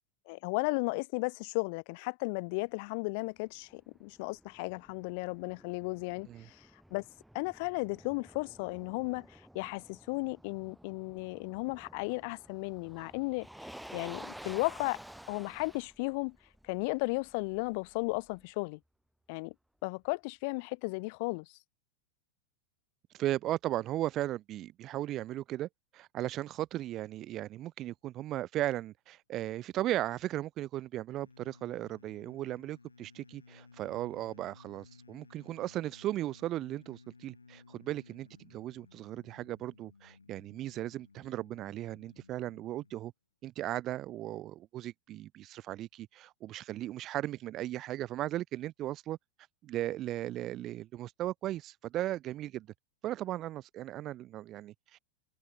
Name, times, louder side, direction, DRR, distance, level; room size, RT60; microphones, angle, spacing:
voice 1, 0.3-7.0 7.3-13.5 13.9-15.0 15.3-16.4 16.6-18.8 19.3-19.5 19.8-21.5, left 30 dB, 45° left, 0.8 m, -35 dB
Motor vehicle (road), 3.4-18.4, equal, ahead, 5.3 m, -52 dB
voice 2, 23.1-43.1 43.4-49.2 49.6-52.7 53.0-55.0, right 14 dB, 35° right, 0.3 m, -36 dB
sound 1, 31.2-43.1, left 4 dB, 80° left, 3.6 m, -58 dB
figure-of-eight pair, 90°, 0 cm